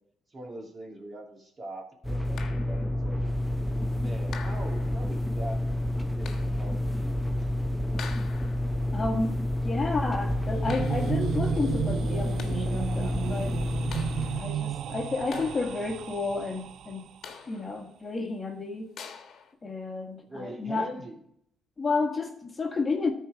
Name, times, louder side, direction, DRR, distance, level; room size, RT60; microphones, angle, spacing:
voice 1, 0.3-3.2 3.9-5.6 6.1-7.5 7.8-8.1 20.3-21.2, right 1 dB, 35° right, 0 dB, 2.7 m, -42 dB
sound 1, 2.0-14.4, left 1 dB, ahead, 0.6 m, -29 dB
sound 2, 2.4-2.9 4.3-5.0 6.3-6.7 8.0-8.7 10.7-11.3 12.2-12.8 13.9-14.5 15.3-16.0 17.2-17.8 19.0-19.5, left 6 dB, 65° left, 1.3 m, -44 dB
voice 2, 8.9-9.3 9.6-13.6 14.3-17.1 17.5-18.9 19.6-20.9 21.8-23.1, left 3 dB, 30° left, 2 dB, 1.6 m, -31 dB
sound 3, 10.2-17.2, right 10 dB, 70° right, 0.4 m, -34 dB
13.5 x 4.7 x 4.7 m, 0.71 s
cardioid pair, 90°, 0 cm